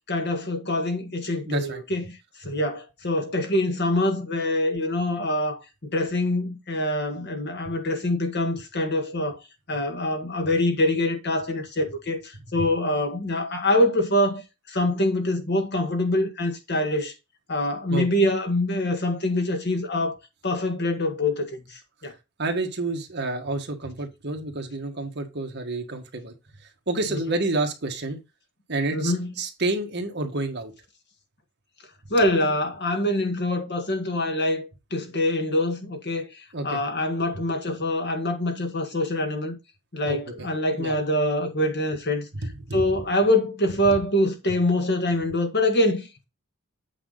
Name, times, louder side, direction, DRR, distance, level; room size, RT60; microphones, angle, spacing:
voice 1, 0.1-2.1 2.4-9.4 9.7-14.4 14.7-17.1 17.5-20.2 20.4-22.1 27.1-27.2 28.9-29.3 32.1-39.5 39.9-42.3 42.7-46.3, left 1 dB, 50° left, 1.8 m, -25 dB
voice 2, 1.5-1.8 12.5-12.6 17.9-18.1 22.4-26.3 26.6-28.2 28.7-30.7 36.5-36.8 40.0-40.5 40.8-40.9 42.4-42.8, right 2 dB, 50° right, 1.6 m, -29 dB
8.6 x 4.9 x 3.9 m
head